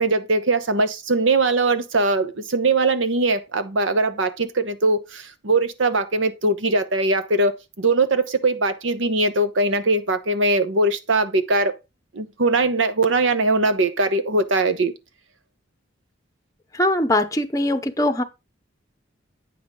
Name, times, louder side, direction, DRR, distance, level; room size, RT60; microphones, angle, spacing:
voice 1, 0.0-11.8 12.1-14.9, right 2 dB, 80° right, 1.0 m, -21 dB
voice 2, 16.7-18.2, left 1 dB, 20° left, 0.7 m, -21 dB
8.6 x 5.8 x 3.7 m
head